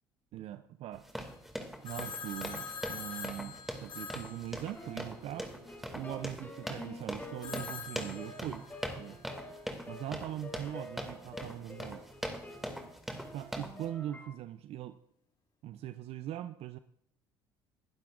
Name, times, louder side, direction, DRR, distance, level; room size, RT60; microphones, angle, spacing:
voice 1, 0.3-1.1 1.8-5.5 5.9-8.6 9.0-9.2 9.9-12.1 13.3-15.0 15.6-16.8, right 12 dB, 60° right, 12 dB, 0.5 m, -41 dB
sound 1, 0.9-13.9, equal, ahead, 2.2 m, -42 dB
Telephone, 1.8-5.1 7.4-8.9, left 6 dB, 45° left, 4.8 m, -44 dB
sound 2, 4.7-14.3, left 1 dB, 15° left, 5.1 m, -48 dB
21.0 x 11.5 x 2.5 m, 0.71 s
hypercardioid pair, 65°, 12 cm